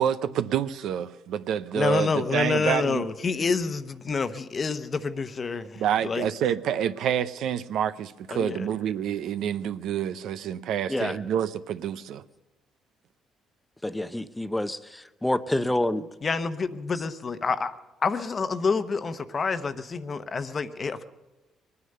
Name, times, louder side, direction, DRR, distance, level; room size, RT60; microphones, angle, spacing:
voice 1, 0.0-3.0 5.7-12.2, right 9 dB, 70° right, 13 dB, 0.6 m, -28 dB
voice 2, 1.7-6.3 8.3-8.7 10.9-11.2 16.2-17.7 18.0-21.0, left 4 dB, 35° left, 11 dB, 0.9 m, -28 dB
voice 3, 13.8-16.0, left 1 dB, 10° left, 13 dB, 0.7 m, -27 dB
22.5 x 9.6 x 6.7 m, 1.1 s
cardioid pair, 95°, 0 cm